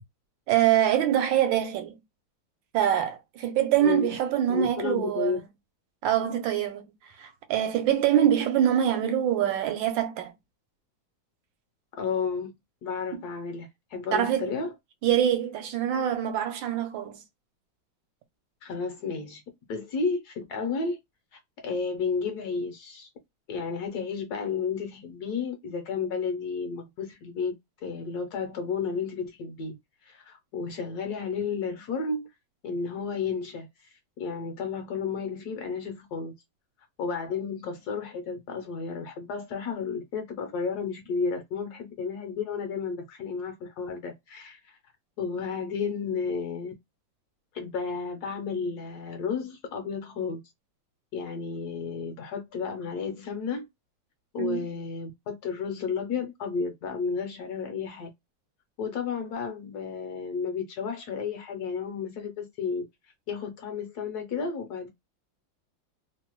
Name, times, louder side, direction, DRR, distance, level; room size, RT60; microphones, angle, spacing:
voice 1, 0.5-2.0 2.7-5.4 6.0-6.9 7.2-10.3 13.1-13.2 14.1-14.5 15.0-17.2 54.4-54.6, right 10 dB, 80° right, 1.3 m, -24 dB
voice 2, 3.8-4.1 4.5-5.4 12.0-12.5 12.8-14.7 18.6-19.4 19.7-21.0 21.3-23.1 23.5-27.5 27.8-29.8 30.0-32.3 32.6-33.7 34.2-36.3 37.0-44.8 45.2-46.7 47.5-50.4 51.1-53.7 54.3-58.1 58.8-62.9 63.3-64.9, left 5 dB, 70° left, 1.0 m, -32 dB
3.1 x 2.0 x 2.9 m
omnidirectional pair, 2.1 m